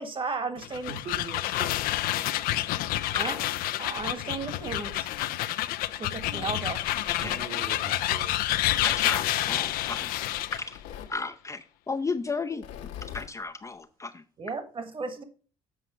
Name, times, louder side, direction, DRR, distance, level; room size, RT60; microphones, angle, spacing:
voice 1, 0.0-0.9 3.2-3.3 3.8-5.1 6.0-6.8 14.4-15.2, right 4 dB, 35° right, 10 dB, 1.6 m, -34 dB
sound 1, 0.6-10.7, left 15 dB, 70° left, 0.5 m, -29 dB
voice 2, 0.9-1.9 7.2-8.3, right 4 dB, 65° right, 3 dB, 2.4 m, -41 dB
Tearing, 3.8-5.5 6.0-7.5 8.6-9.1 9.6-11.2 12.5-13.3, left 10 dB, 85° left, 1.3 m, -45 dB
voice 3, 8.7-10.1 10.5-10.8 11.1-14.2, left 4 dB, 20° left, 6 dB, 0.5 m, -34 dB
7.8 x 4.9 x 5.6 m, 0.41 s
supercardioid pair, 75°, 16 cm